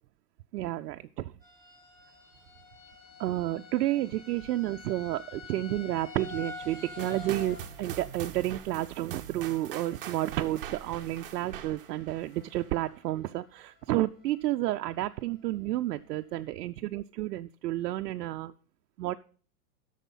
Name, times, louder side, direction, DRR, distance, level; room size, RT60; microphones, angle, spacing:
voice 1, 0.5-1.3 3.2-18.5 19.0-19.1, right 15 dB, 90° right, 7 dB, 0.6 m, -31 dB
sound 1, 1.4-12.1 12.3-12.9 13.3-13.4 13.8-13.9, left 4 dB, 20° left, 3.3 m, -48 dB
sound 2, 7.0-12.8, right 10 dB, 35° right, 0.6 m, -43 dB
8.3 x 6.5 x 5.4 m, 0.43 s
supercardioid pair, 170°, 47 cm